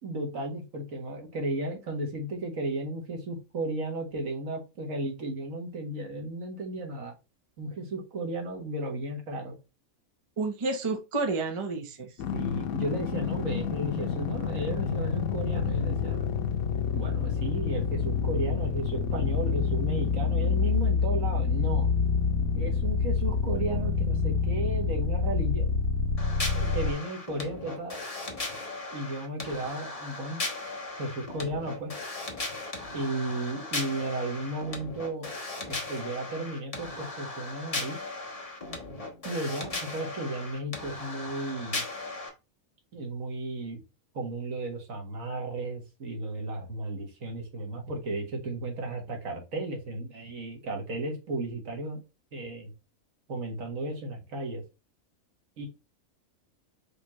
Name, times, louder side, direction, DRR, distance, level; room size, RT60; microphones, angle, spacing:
voice 1, 0.0-7.1 7.6-9.6 12.3-16.2 16.9-21.9 22.6-25.7 26.6-28.0 28.9-30.4 31.0-31.9 32.9-35.3 35.7-38.0 39.2-41.8 42.9-43.8 44.1-52.0 52.3-52.7 53.3-54.6 55.6-55.7, right 2 dB, 70° right, 1 dB, 1.9 m, -34 dB
voice 2, 10.4-12.1, right 3 dB, 25° right, 4 dB, 0.9 m, -30 dB
sound 1, 12.2-26.9, left 5 dB, 80° left, 1.2 m, -27 dB
sound 2, 26.2-42.3, left 2 dB, 25° left, 1.2 m, -37 dB
5.1 x 3.4 x 3.0 m, 0.27 s
omnidirectional pair, 1.4 m